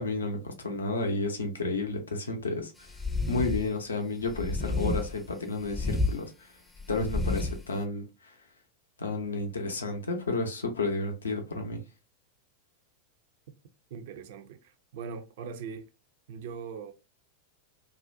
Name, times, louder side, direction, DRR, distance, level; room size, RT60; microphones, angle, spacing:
voice 1, 0.0-2.9 3.3-6.6 6.9-8.3 9.0-11.8, left 3 dB, 75° left, 0.5 m, -32 dB
sound 1, 2.9-3.7 4.3-5.2 5.6-6.1 6.8-7.6, left 2 dB, 10° left, 0.4 m, -30 dB
voice 2, 13.9-15.9 16.3-16.9, right 6 dB, 55° right, 0.4 m, -41 dB
2.4 x 2.1 x 2.5 m
figure-of-eight pair, 90°, 0 cm